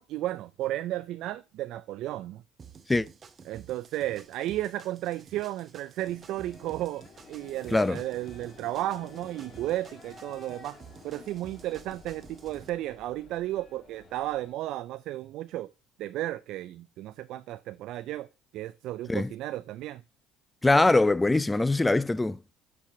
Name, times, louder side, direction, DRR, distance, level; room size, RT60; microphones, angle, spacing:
voice 1, 0.0-2.4 3.5-10.8 11.0-15.7 16.0-18.3 18.5-20.0, right 14 dB, 65° right, 0.3 m, -34 dB
sound 1, 2.6-12.7, right 6 dB, 35° right, 0.8 m, -51 dB
sound 2, 6.0-14.5, left 4 dB, 40° left, 2.5 m, -52 dB
voice 2, 20.6-22.4, left 2 dB, 15° left, 0.3 m, -22 dB
8.3 x 4.6 x 2.7 m
hypercardioid pair, 65°, 0 cm